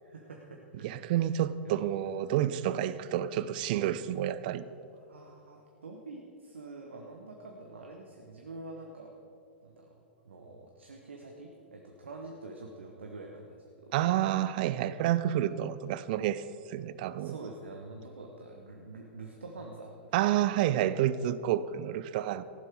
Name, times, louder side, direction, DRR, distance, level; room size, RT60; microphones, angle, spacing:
voice 1, 0.0-1.3 1.6-2.0 5.1-9.1 9.6-9.9 10.2-14.0 17.2-20.5, right 2 dB, 75° right, 1.3 m, -46 dB
voice 2, 0.8-4.7 13.9-17.3 20.1-22.4, right 12 dB, 50° right, 0.5 m, -29 dB
15.0 x 11.5 x 4.8 m
figure-of-eight pair, 100°, 6 cm